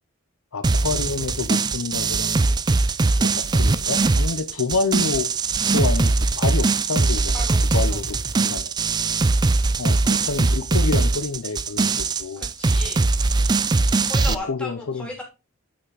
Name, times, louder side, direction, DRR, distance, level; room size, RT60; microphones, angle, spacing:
voice 1, 0.5-2.6 3.2-5.3 5.7-7.4 7.7-8.7 9.8-11.9 12.2-12.4 14.3-15.1, left 4 dB, 80° left, 0.8 m, -28 dB
sound 1, 0.6-14.3, right 3 dB, 20° right, 0.3 m, -21 dB
voice 2, 7.3-8.0 9.1-9.4 12.4-13.0 13.8-15.2, left 1 dB, 5° left, 3.1 m, -36 dB
8.7 x 5.9 x 4.0 m
head